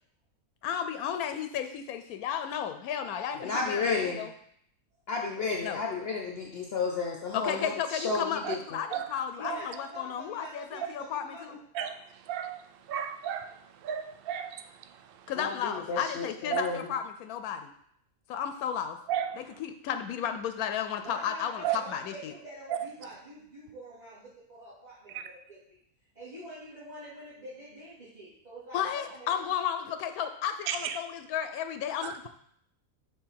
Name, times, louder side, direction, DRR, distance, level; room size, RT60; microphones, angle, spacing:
voice 1, 0.6-4.3 5.6-5.8 7.3-11.6 15.3-17.7 18.3-19.0 19.3-22.3 28.7-32.3, left 8 dB, 85° left, 9 dB, 1.1 m, -33 dB
voice 2, 3.4-4.2 5.1-8.3 15.4-16.9, left 4 dB, 55° left, 0 dB, 0.8 m, -32 dB
voice 3, 9.4-11.6 21.0-25.8 26.1-29.4, equal, 30° right, -12 dB, 2.6 m, -46 dB
voice 4, 12.3-12.6 12.9-13.6 13.8-14.6 16.5-16.6 19.1-19.4 21.6-21.8 22.7-22.8 25.1-25.2 30.7-31.0 32.0-32.1, right 10 dB, 80° right, 9 dB, 0.5 m, -32 dB
6.9 x 3.1 x 5.7 m, 0.68 s
omnidirectional pair, 1.5 m